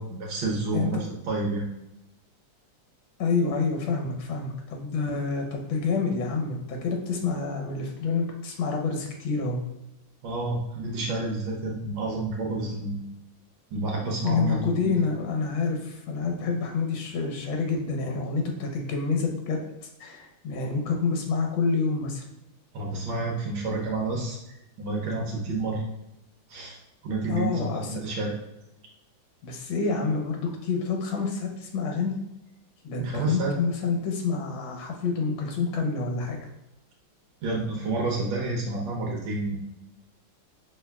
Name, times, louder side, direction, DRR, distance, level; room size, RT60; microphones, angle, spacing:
voice 1, 0.0-1.6 10.2-13.1 13.7-14.9 22.7-25.8 26.5-26.8 27.0-28.4 33.0-33.5 37.4-39.5, right 2 dB, 75° right, -1 dB, 1.5 m, -30 dB
voice 2, 3.2-9.6 14.2-19.6 20.0-22.2 27.2-28.0 29.4-32.1 32.8-36.4, left 4 dB, 75° left, 1 dB, 1.6 m, -28 dB
5.5 x 3.4 x 2.2 m, 0.90 s
omnidirectional pair, 2.2 m